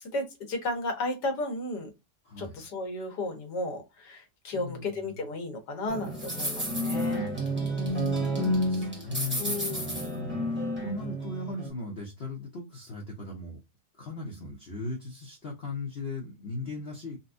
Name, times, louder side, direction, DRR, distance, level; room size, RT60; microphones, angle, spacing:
voice 1, 0.1-1.9 2.4-7.3 9.4-10.1, left 2 dB, 90° left, 1.6 m, -34 dB
voice 2, 2.2-2.6 4.5-5.3 7.8-13.6 13.9-17.2, left 3 dB, 50° left, 0.9 m, -38 dB
sound 1, 5.9-11.7, equal, 10° right, 1.1 m, -30 dB
4.0 x 2.2 x 2.5 m
omnidirectional pair, 1.7 m